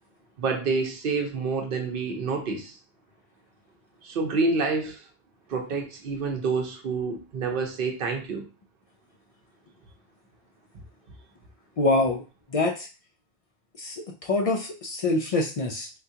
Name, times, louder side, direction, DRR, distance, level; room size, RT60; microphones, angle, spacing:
voice 1, 0.4-2.8 4.0-5.0 5.5-8.5, right 4 dB, 60° right, 3 dB, 0.8 m, -28 dB
voice 2, 11.8-12.2 12.5-12.9 13.8-15.9, left 2 dB, 65° left, 1 dB, 0.3 m, -25 dB
3.7 x 2.3 x 2.7 m, 0.32 s
omnidirectional pair, 1.1 m